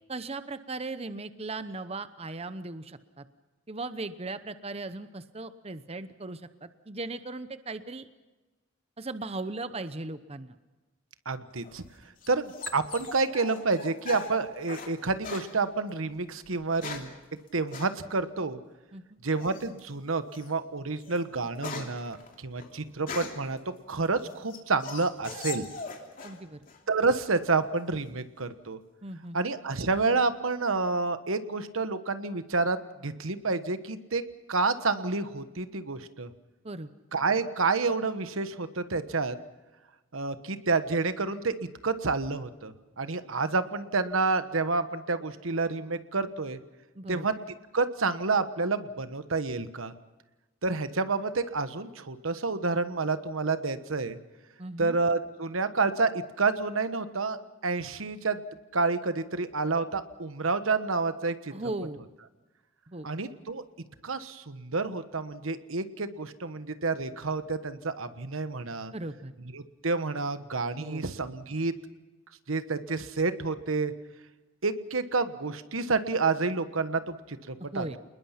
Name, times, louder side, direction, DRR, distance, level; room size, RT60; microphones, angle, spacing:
voice 1, 0.1-3.3 3.7-8.1 9.0-10.5 18.9-19.2 26.2-26.6 29.0-29.4 36.6-36.9 46.9-47.3 54.6-55.0 61.5-62.0 62.9-63.1 68.9-69.3 70.7-71.0 77.7-78.0, right 2 dB, 30° right, 12 dB, 0.8 m, -38 dB
voice 2, 11.2-11.8 12.3-17.1 17.5-18.6 19.2-23.6 23.9-25.7 26.9-28.8 29.3-34.2 34.5-36.3 37.1-39.4 40.1-41.5 41.8-46.6 47.1-47.3 47.7-49.9 50.6-54.2 54.8-57.4 57.6-58.4 58.7-61.5 63.0-63.6 64.0-68.9 69.5-71.7 72.5-73.9 74.6-77.9, right 3 dB, 90° right, 11 dB, 1.3 m, -29 dB
sound 1, 11.6-14.9 15.2-15.5 16.4-17.2 17.7-17.9 19.4-19.8 20.3-20.5 20.9-23.5 24.1-26.4 26.7-27.3, left 4 dB, 45° left, 2.9 m, -40 dB
27.5 x 20.5 x 5.9 m, 1.2 s
head